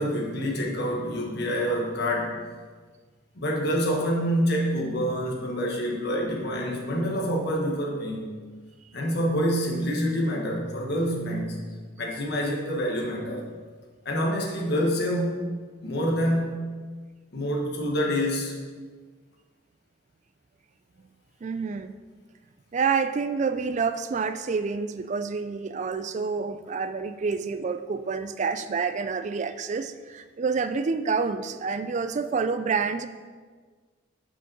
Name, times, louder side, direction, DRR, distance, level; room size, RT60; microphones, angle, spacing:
voice 1, 0.0-2.4 3.3-8.4 8.9-11.6 12.0-13.4 14.0-15.4 15.8-16.6 17.3-18.5, equal, 55° left, -1 dB, 1.2 m, -27 dB
voice 2, 21.4-22.0 22.7-33.1, right 5 dB, 35° right, 11 dB, 0.3 m, -28 dB
5.8 x 5.1 x 5.4 m, 1.5 s
head